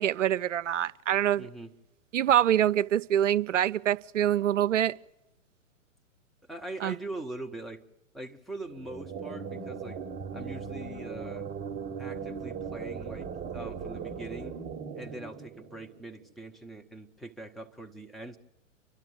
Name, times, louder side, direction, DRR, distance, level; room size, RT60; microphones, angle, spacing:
voice 1, 0.0-1.5 2.1-5.0 6.8-6.9, right 11 dB, 65° right, 0.6 m, -25 dB
voice 2, 1.4-1.7 6.5-7.8 8.1-10.0 10.3-11.5 12.0-13.3 13.5-14.5 14.9-18.4, right 2 dB, ahead, 1.0 m, -42 dB
sound 1, 8.7-16.3, right 6 dB, 20° right, 1.1 m, -38 dB
29.0 x 12.5 x 7.9 m
figure-of-eight pair, 115°, 40 cm